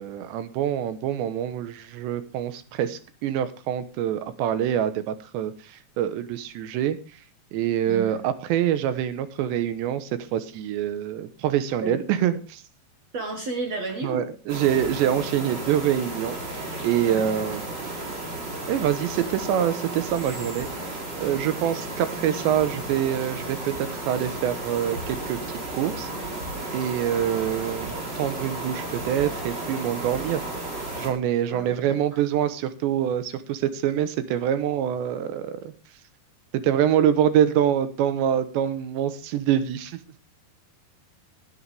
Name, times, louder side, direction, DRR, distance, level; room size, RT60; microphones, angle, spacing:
voice 1, 0.0-5.5 6.0-7.0 7.5-12.6 14.0-17.6 18.7-20.7 21.2-25.4 25.7-26.1 26.7-30.4 31.0-35.7 36.6-40.0, right 10 dB, 80° right, 11 dB, 3.3 m, -25 dB
voice 2, 7.9-8.2 11.8-12.0 13.1-14.2 17.0-17.3 31.5-32.0, right 3 dB, 60° right, 3 dB, 1.8 m, -32 dB
sound 1, 14.5-31.1, right 2 dB, 25° right, 3.9 m, -33 dB
18.5 x 10.0 x 3.5 m, 0.34 s
omnidirectional pair, 5.1 m